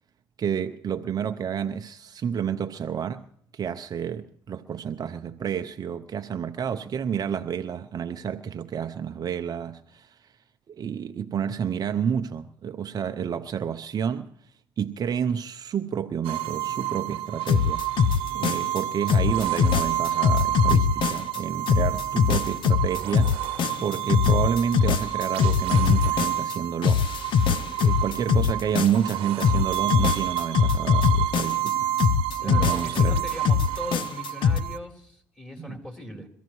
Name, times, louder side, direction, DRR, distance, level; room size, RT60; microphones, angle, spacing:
voice 1, 0.4-3.3 3.5-10.3 10.7-14.3 14.8-17.8 18.3-27.4 27.8-33.2 35.6-35.8, right 8 dB, 45° right, 0.6 m, -30 dB
sound 1, 16.2-34.8, right 13 dB, 75° right, 1.0 m, -30 dB
sound 2, 17.5-18.8 19.1-21.4 21.7-26.6 26.8-29.1 29.4-31.7 32.0-34.6, left 6 dB, 60° left, 0.7 m, -22 dB
voice 2, 32.4-36.3, left 1 dB, 10° left, 3.9 m, -39 dB
23.0 x 14.5 x 3.1 m
supercardioid pair, 80°, 9 cm